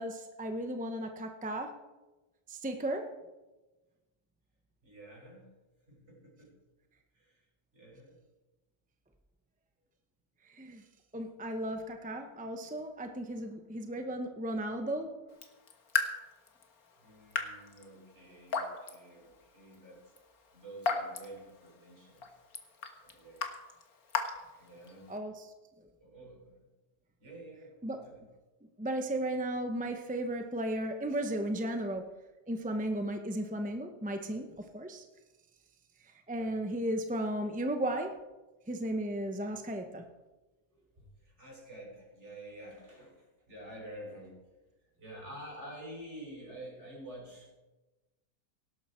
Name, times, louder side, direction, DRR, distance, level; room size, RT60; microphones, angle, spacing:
voice 1, 0.0-1.8 2.5-3.1 10.4-10.8 11.1-15.2 25.1-25.5 27.8-28.0 28.8-32.1 32.5-35.1 36.3-38.2 38.7-40.0, right 1 dB, 10° right, 5 dB, 0.4 m, -35 dB
voice 2, 4.8-5.5 5.9-6.5 7.1-7.4 7.7-8.2 17.0-20.1 20.5-22.3 23.0-23.5 24.6-25.2 26.0-26.7 27.2-28.3 36.3-36.6 40.7-44.4 45.0-47.6, right 1 dB, 35° right, -3 dB, 6.2 m, -49 dB
Raindrop / Drip, 15.3-25.2, left 5 dB, 55° left, 1.8 m, -39 dB
17.5 x 12.0 x 4.4 m, 1.1 s
omnidirectional pair, 1.9 m